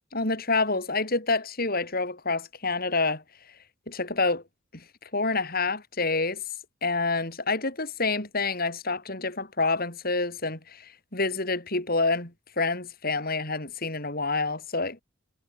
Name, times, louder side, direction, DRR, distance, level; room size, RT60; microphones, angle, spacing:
voice 1, 0.1-3.2 3.9-4.4 5.1-6.4 6.8-10.8 11.1-12.3 12.6-15.0, left 3 dB, 50° left, 6.0 m, -27 dB
head